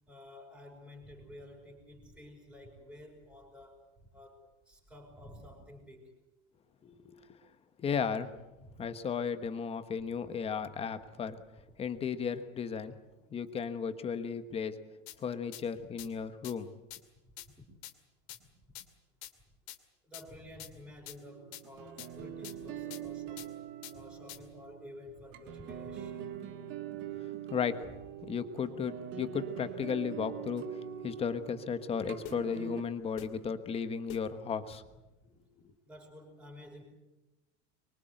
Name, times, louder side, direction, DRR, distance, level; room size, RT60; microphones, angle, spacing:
voice 1, 0.1-3.9 4.1-4.4 4.7-6.1 8.6-8.8 15.9-16.1 17.2-17.6 18.3-18.4 18.7-18.8 20.0-23.5 23.9-26.3 35.2-35.4 35.8-36.8, left 1 dB, 5° right, 1 dB, 5.0 m, -51 dB
voice 2, 6.8-7.4 7.8-8.3 8.8-11.4 11.8-12.9 13.3-14.8 15.2-16.7 27.1-27.9 28.3-30.6 31.0-34.8, left 6 dB, 15° left, 10 dB, 1.2 m, -35 dB
sound 1, 15.1-15.2 15.5-15.6 16.0-16.1 16.4-16.5 16.9-17.0 17.4-17.5 17.8-17.9 18.3-18.4 18.8-18.9 19.2-19.3 19.7-19.8 20.1-20.2 20.6-20.7 21.1-21.2 21.5-21.6 22.0-22.1 22.4-22.5 22.9-23.0 23.4-23.5 23.8-23.9 24.3-24.4 32.3-32.4 33.2-33.3 34.1-34.2, left 15 dB, 40° left, 2.4 m, -45 dB
sound 2, 21.2-32.8, right 9 dB, 30° right, 1.9 m, -43 dB
25.0 x 23.5 x 7.9 m, 1.0 s
supercardioid pair, 175°, 36 cm